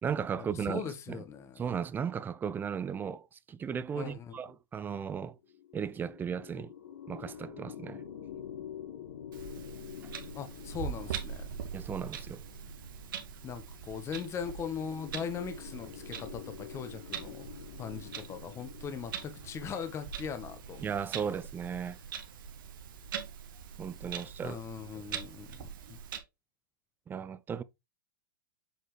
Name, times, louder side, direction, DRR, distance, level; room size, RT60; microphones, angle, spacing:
voice 1, 0.0-0.8 1.1-1.2 1.6-5.4 5.7-6.7 7.1-8.0 10.0-10.1 11.7-12.4 20.8-22.0 23.8-24.6 27.1-27.6, right 7 dB, 15° right, 0.5 m, -36 dB
voice 2, 0.6-1.6 4.0-4.3 10.3-11.5 13.4-20.9 21.2-21.4 24.4-26.0, left 7 dB, 25° left, 1.2 m, -40 dB
sound 1, 5.4-22.9, left 9 dB, 75° left, 1.4 m, -48 dB
Clock, 9.3-26.2, right 8 dB, 70° right, 1.6 m, -43 dB
8.1 x 4.2 x 3.2 m
hypercardioid pair, 125°, 12 cm